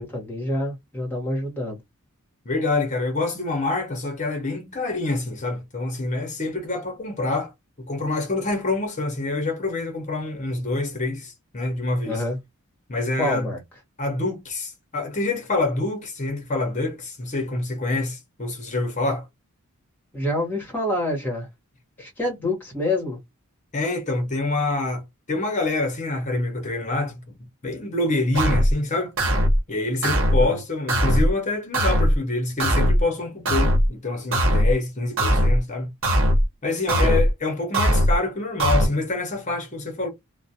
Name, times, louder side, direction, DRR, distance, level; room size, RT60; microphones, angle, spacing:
voice 1, 0.0-1.8 12.0-12.4 13.2-13.6 20.1-21.5 22.0-23.2 30.4-30.5 37.0-37.2, left 1 dB, 10° left, 1.1 m, -27 dB
voice 2, 2.5-7.5 7.9-12.2 12.9-13.5 14.0-19.3 23.7-27.2 27.6-29.1 29.7-35.9 36.6-40.1, left 2 dB, 35° left, 0.7 m, -26 dB
sound 1, 28.3-28.7 29.2-29.6 30.0-30.4 30.9-31.3 31.7-32.2 32.6-33.0 33.5-33.9 34.3-34.7 35.2-35.6 36.0-36.4 36.9-37.3 37.7-38.2 38.6-38.9, equal, 60° right, 1.0 m, -19 dB
2.4 x 2.0 x 2.7 m
head